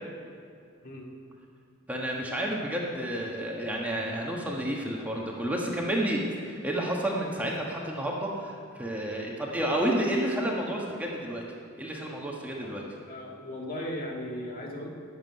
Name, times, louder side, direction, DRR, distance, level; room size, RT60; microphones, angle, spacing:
voice 1, 1.9-11.4 11.8-12.8, right 1 dB, 5° right, -2 dB, 1.4 m, -30 dB
voice 2, 13.1-14.9, left 1 dB, 40° left, -1 dB, 1.9 m, -37 dB
12.0 x 7.5 x 9.4 m, 2.4 s
head